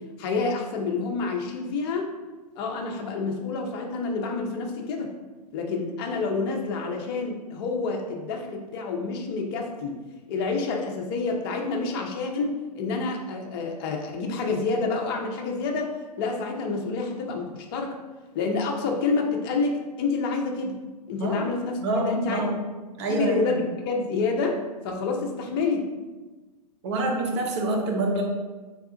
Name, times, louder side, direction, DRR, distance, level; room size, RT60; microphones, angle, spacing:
voice 1, 0.2-2.1 2.6-5.1 5.5-10.0 10.3-18.0 18.3-20.8 21.1-21.8 22.1-22.4 23.1-24.6 24.8-25.9, left 4 dB, 35° left, 2 dB, 0.6 m, -28 dB
voice 2, 21.8-22.6 23.0-23.4 26.8-28.2, right 2 dB, 45° right, 1 dB, 0.7 m, -26 dB
3.4 x 2.4 x 3.8 m, 1.3 s
hypercardioid pair, 130°, 21 cm